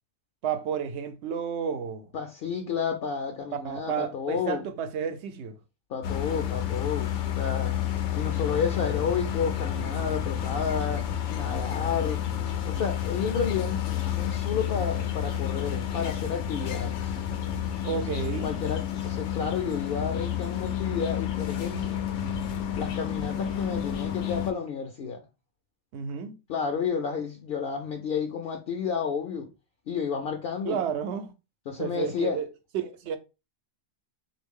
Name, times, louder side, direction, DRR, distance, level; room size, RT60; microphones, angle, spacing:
voice 1, 0.4-2.1 3.6-5.6 17.8-18.5 25.9-26.4 30.6-31.3 31.8-32.5 32.7-33.2, right 7 dB, 75° right, 0.9 m, -31 dB
voice 2, 2.1-4.6 5.9-7.8 8.1-12.2 12.7-13.8 14.1-17.1 18.4-22.0 22.8-25.3 26.5-29.5 29.9-30.8 31.7-32.4, left 6 dB, 65° left, 0.7 m, -31 dB
sound 1, 6.0-24.5, left 10 dB, 90° left, 0.9 m, -30 dB
3.4 x 2.5 x 3.5 m
omnidirectional pair, 1.2 m